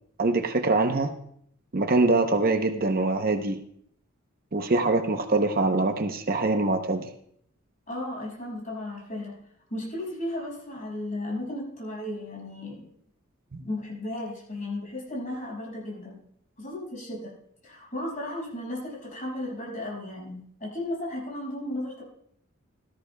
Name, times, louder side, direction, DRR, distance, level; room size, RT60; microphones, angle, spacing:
voice 1, 0.2-1.1 1.7-3.6 4.5-7.1 13.5-13.6, right 3 dB, 45° right, 7 dB, 0.7 m, -24 dB
voice 2, 7.9-9.4 9.7-12.9 13.6-16.2 16.6-17.3 17.6-22.0, left 1 dB, 35° left, -4 dB, 5.7 m, -35 dB
17.5 x 13.5 x 2.2 m, 0.67 s
head